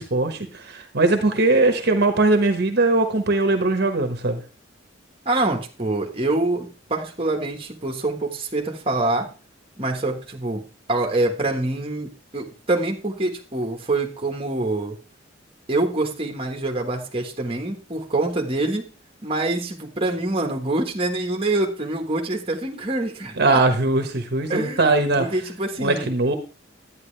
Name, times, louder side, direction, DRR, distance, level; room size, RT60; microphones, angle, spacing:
voice 1, 0.0-4.4 23.4-25.2 25.8-26.4, right 2 dB, 55° right, 6 dB, 1.2 m, -20 dB
voice 2, 5.2-9.3 9.8-15.0 15.7-18.9 19.2-23.6 24.5-24.9 25.2-26.1, right 2 dB, 30° right, 2 dB, 1.4 m, -25 dB
11.0 x 9.3 x 3.3 m, 0.34 s
head